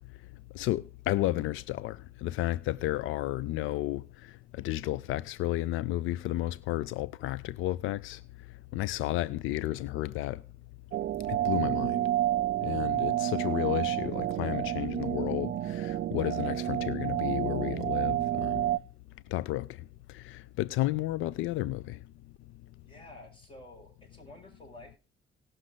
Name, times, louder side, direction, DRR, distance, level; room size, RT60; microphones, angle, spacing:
voice 1, 0.5-4.0 4.6-8.2 8.7-10.4 11.3-12.0 12.6-18.7 19.3-19.7 20.1-22.0, left 16 dB, 90° left, 0.4 m, -32 dB
sound 1, 10.9-18.8, right 13 dB, 55° right, 0.4 m, -30 dB
voice 2, 22.8-25.0, left 1 dB, 25° left, 6.3 m, -52 dB
18.5 x 6.4 x 3.9 m
cardioid pair, 90°, 20 cm